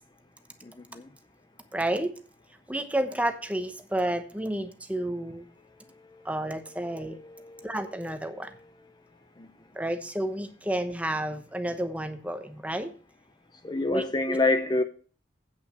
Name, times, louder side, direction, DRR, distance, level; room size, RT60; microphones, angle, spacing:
voice 1, 0.6-1.0 6.9-7.8 9.4-9.5 13.6-14.8, left 2 dB, 25° left, 0.5 m, -28 dB
voice 2, 1.7-2.1 2.7-5.4 6.2-7.2 7.6-8.5 9.7-12.9 13.8-14.4, right 1 dB, 10° right, 0.9 m, -31 dB
8.7 x 5.4 x 6.8 m
head